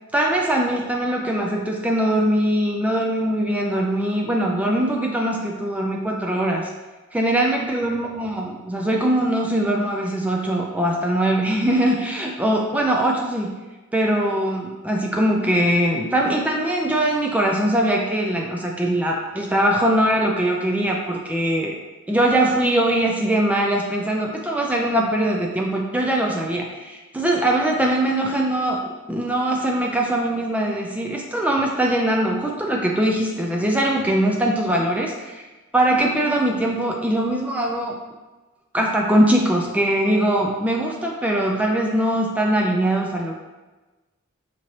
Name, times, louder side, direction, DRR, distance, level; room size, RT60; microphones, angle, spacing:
voice 1, 0.1-6.7 7.1-13.5 13.9-21.7 22.1-35.4 35.7-38.0 38.7-43.4, right 1 dB, 5° right, -1 dB, 0.3 m, -21 dB
5.0 x 3.1 x 2.8 m, 1.2 s
head